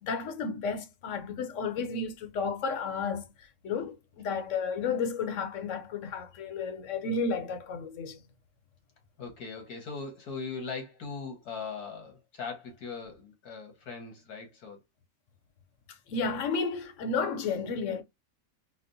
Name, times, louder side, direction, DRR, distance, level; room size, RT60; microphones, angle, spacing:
voice 1, 0.0-8.2 15.9-18.0, left 4 dB, 60° left, 1.0 m, -32 dB
voice 2, 9.2-14.8, left 4 dB, 90° left, 1.9 m, -40 dB
4.3 x 2.1 x 2.6 m
omnidirectional pair, 1.6 m